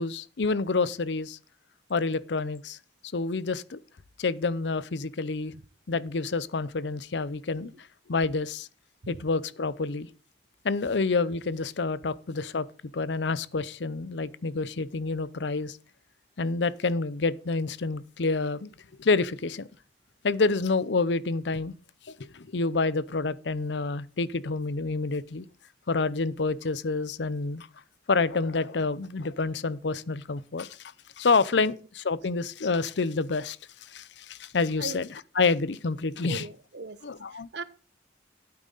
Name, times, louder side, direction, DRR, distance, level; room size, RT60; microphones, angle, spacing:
voice 1, 0.0-1.4 1.9-2.8 3.1-3.8 4.2-5.5 5.9-7.7 8.1-8.7 9.1-10.1 10.6-12.7 12.9-15.8 16.4-18.7 19.0-19.7 20.2-21.7 22.3-25.4 25.9-27.7 28.1-33.6 33.9-35.1 35.4-36.5 37.0-37.5, left 3 dB, 80° left, 0.6 m, -28 dB
voice 2, 36.3-37.0 37.3-37.6, right 3 dB, 70° right, 1.0 m, -38 dB
12.5 x 8.7 x 4.0 m
head